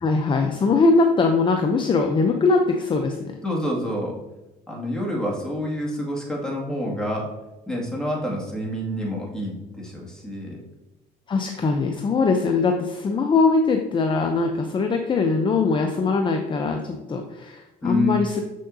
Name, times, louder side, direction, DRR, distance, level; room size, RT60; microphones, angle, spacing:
voice 1, 0.0-3.3 11.3-18.4, left 4 dB, 30° left, 4 dB, 0.6 m, -21 dB
voice 2, 3.4-4.1 4.7-7.3 7.7-10.6 17.8-18.2, left 1 dB, 5° left, -3 dB, 2.1 m, -27 dB
6.8 x 6.3 x 2.7 m, 1.0 s
cardioid pair, 110°, 17 cm